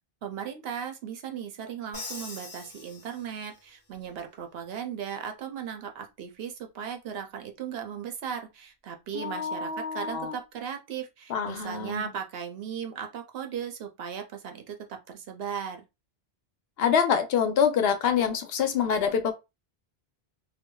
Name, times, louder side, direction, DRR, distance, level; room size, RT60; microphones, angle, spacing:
voice 1, 0.2-15.9, right 8 dB, 70° right, 0.8 m, -37 dB
Crash cymbal, 1.9-3.7, left 3 dB, 20° left, 0.9 m, -42 dB
voice 2, 9.1-10.4 11.3-12.1 16.8-19.3, left 7 dB, 70° left, 0.8 m, -26 dB
3.2 x 2.2 x 2.2 m
omnidirectional pair, 1.1 m